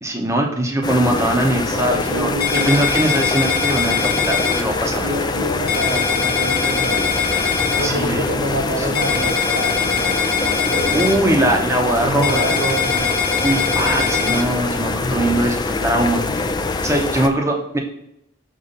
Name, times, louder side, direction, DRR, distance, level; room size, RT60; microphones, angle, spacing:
voice 1, 0.0-2.3 2.7-5.1 7.8-9.0 10.9-12.5 13.3-17.8, right 1 dB, 15° right, 1 dB, 0.8 m, -21 dB
sound 1, 0.8-17.3, left 3 dB, 20° left, 0.3 m, -24 dB
voice 2, 1.7-2.8 4.9-7.2 7.8-11.4 12.0-13.2 13.9-14.1, right 1 dB, 75° right, 5 dB, 0.8 m, -27 dB
sound 2, 2.4-4.6 5.7-7.9 8.9-11.1 12.2-14.4, left 6 dB, 50° left, 0.7 m, -22 dB
6.6 x 3.1 x 5.4 m, 0.78 s
head